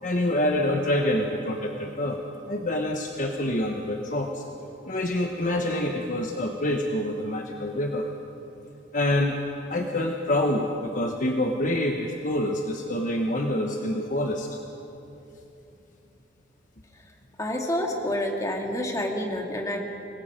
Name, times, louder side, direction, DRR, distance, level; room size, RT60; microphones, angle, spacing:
voice 1, 0.0-2.2 2.5-4.4 4.8-8.1 8.9-9.4 9.7-14.5, left 1 dB, 45° left, 2 dB, 1.2 m, -26 dB
voice 2, 17.4-19.8, left 1 dB, 20° left, 1 dB, 2.2 m, -28 dB
25.5 x 19.5 x 5.3 m, 2.9 s
head